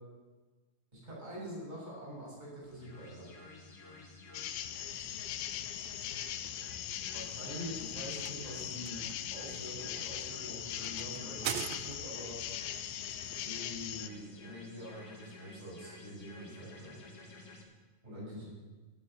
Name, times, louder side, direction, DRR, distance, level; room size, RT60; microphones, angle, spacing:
voice 1, 0.9-3.3 7.0-12.4 13.4-17.0 18.0-18.5, equal, 10° right, -6 dB, 6.5 m, -45 dB
sound 1, 2.6-17.6, left 3 dB, 50° left, 2.7 m, -52 dB
sound 2, 4.3-14.1, left 11 dB, 85° left, 2.5 m, -40 dB
sound 3, 7.2-12.3, right 13 dB, 85° right, 1.6 m, -44 dB
19.0 x 9.7 x 5.7 m, 1.3 s
omnidirectional pair, 3.9 m